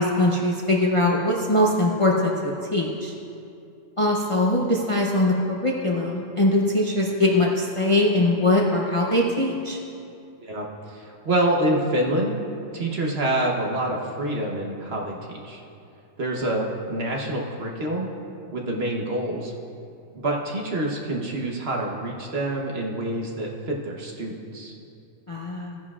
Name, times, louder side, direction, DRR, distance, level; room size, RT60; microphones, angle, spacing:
voice 1, 0.0-3.1 4.0-9.8 25.3-25.8, left 1 dB, 30° left, -2 dB, 0.6 m, -22 dB
voice 2, 10.4-12.4 12.7-15.6 16.2-18.1 18.5-19.5 20.1-24.7, right 1 dB, 50° right, -1 dB, 1.3 m, -27 dB
15.5 x 10.5 x 2.4 m, 2.6 s
omnidirectional pair, 1.4 m